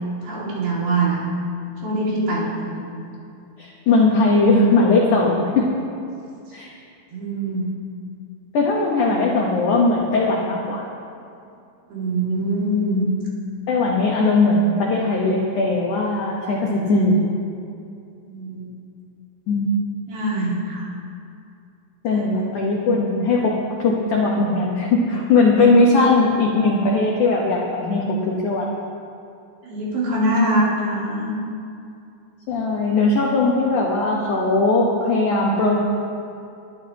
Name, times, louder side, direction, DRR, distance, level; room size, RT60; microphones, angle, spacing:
voice 1, 0.2-1.2 1.8-3.1 7.1-7.7 11.9-13.1 18.2-18.7 20.1-20.9 22.1-22.3 25.3-25.6 25.9-26.1 29.6-31.4, right 1 dB, 60° right, -6 dB, 4.0 m, -23 dB
voice 2, 3.6-5.7 6.5-6.7 8.5-10.9 13.7-17.3 19.5-19.7 22.0-28.7 32.5-35.8, left 3 dB, 75° left, -2 dB, 1.8 m, -19 dB
21.5 x 12.0 x 2.9 m, 2.6 s
omnidirectional pair, 5.2 m